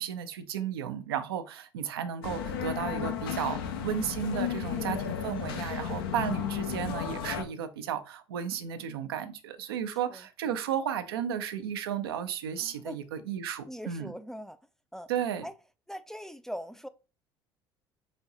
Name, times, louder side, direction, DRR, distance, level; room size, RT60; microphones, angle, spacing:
voice 1, 0.0-14.1 15.1-15.5, right 9 dB, 80° right, 0.5 m, -34 dB
sound 1, 2.2-7.4, left 8 dB, 75° left, 0.7 m, -33 dB
voice 2, 12.6-13.0 13.7-14.6 14.9-15.1 15.4-15.5 15.9-16.9, equal, 5° left, 0.3 m, -41 dB
4.1 x 3.7 x 2.6 m
hypercardioid pair, 60°, 13 cm